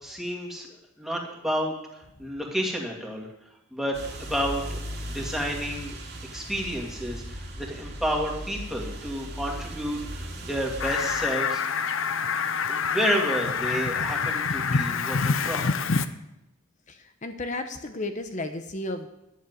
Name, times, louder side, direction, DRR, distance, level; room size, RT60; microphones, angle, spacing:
voice 1, 0.0-3.3 3.7-3.9 4.2-5.9 6.3-11.6 12.7-15.7, equal, ahead, -1 dB, 2.1 m, -31 dB
sound 1, 3.9-11.1, right 1 dB, 55° right, 2.3 m, -37 dB
Fowl, 10.8-16.1, left 5 dB, 70° left, 0.7 m, -26 dB
voice 2, 16.9-19.1, left 2 dB, 35° left, 7 dB, 0.8 m, -33 dB
10.5 x 7.3 x 9.5 m, 0.89 s
head